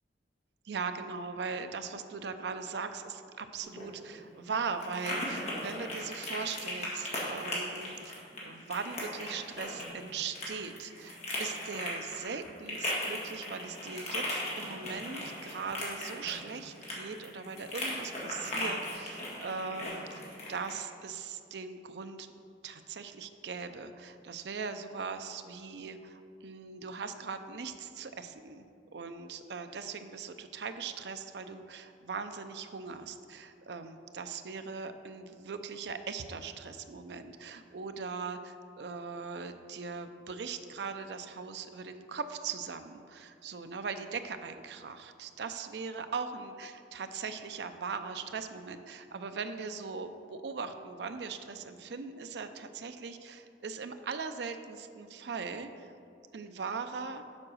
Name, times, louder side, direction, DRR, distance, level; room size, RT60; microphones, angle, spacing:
voice 1, 0.6-22.3 22.6-28.7 28.9-55.9 56.3-57.2, right 5 dB, 70° right, 9 dB, 0.5 m, -40 dB
sound 1, 3.6-20.8, left 1 dB, 40° left, 1.9 m, -38 dB
7.4 x 4.8 x 6.2 m, 2.4 s
head